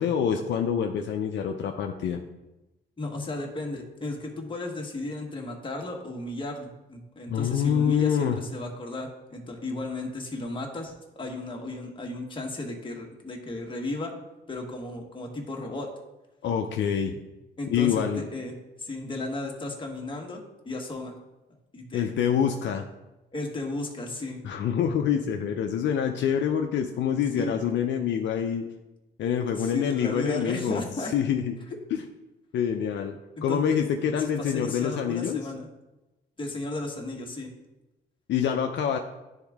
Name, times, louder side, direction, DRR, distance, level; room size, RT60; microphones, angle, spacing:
voice 1, 0.0-2.2 7.3-8.4 16.4-17.2 17.7-18.2 21.9-22.8 24.4-28.7 29.2-31.5 31.9-32.0 32.5-33.2 33.4-35.4 38.3-39.0, left 8 dB, 70° left, 4 dB, 0.5 m, -26 dB
voice 2, 3.0-14.1 14.5-15.9 17.6-18.5 18.8-21.1 21.7-22.1 23.3-24.4 27.4-27.5 29.6-31.1 33.4-33.6 34.2-35.7 36.4-37.5, left 2 dB, 25° left, 1 dB, 1.3 m, -34 dB
9.8 x 3.6 x 3.5 m, 1.0 s
cardioid pair, 90°, 20 cm